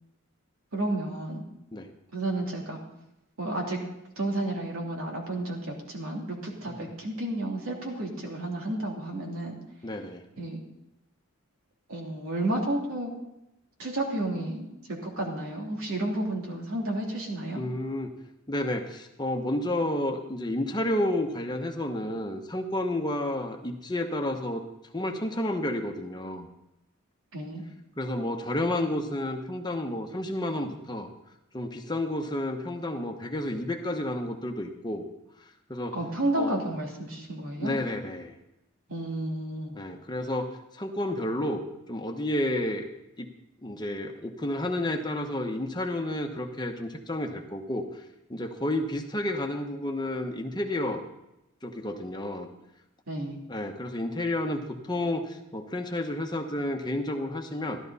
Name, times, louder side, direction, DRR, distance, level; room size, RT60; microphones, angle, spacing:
voice 1, 0.7-1.4 2.1-2.8 3.4-3.8 4.2-9.6 10.4-10.6 11.9-13.1 13.8-14.7 15.0-17.7 27.3-27.6 35.9-37.8 38.9-39.7 53.1-53.4, right 1 dB, 80° right, -1 dB, 3.0 m, -31 dB
voice 2, 9.8-10.2 17.5-18.1 18.5-24.6 24.9-26.5 28.0-31.1 31.5-35.0 35.7-35.9 36.4-36.6 37.6-38.4 39.7-41.6 41.9-42.9 43.2-43.3 43.6-48.0 48.3-51.0 51.6-52.5 53.5-54.6 54.8-57.8, left 1 dB, 20° left, 4 dB, 1.0 m, -31 dB
14.5 x 12.0 x 4.1 m, 0.89 s
head